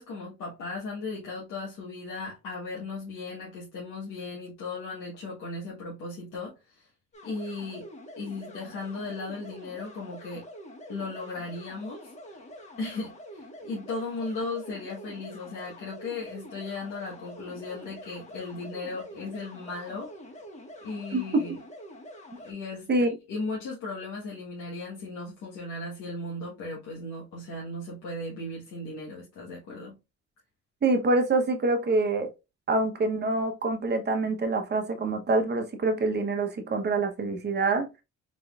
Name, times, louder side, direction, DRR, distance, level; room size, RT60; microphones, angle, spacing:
voice 1, 0.0-6.9 7.2-7.9 8.2-10.4 10.9-12.1 12.8-20.1 20.8-21.6 22.4-30.0, left 3 dB, 85° left, 1.3 m, -36 dB
sound 1, 7.1-22.5, equal, 25° left, 1.5 m, -46 dB
voice 2, 30.8-32.3 32.7-37.9, right 2 dB, 35° right, 1.0 m, -26 dB
3.8 x 3.7 x 2.4 m
cardioid pair, 90°, 30 cm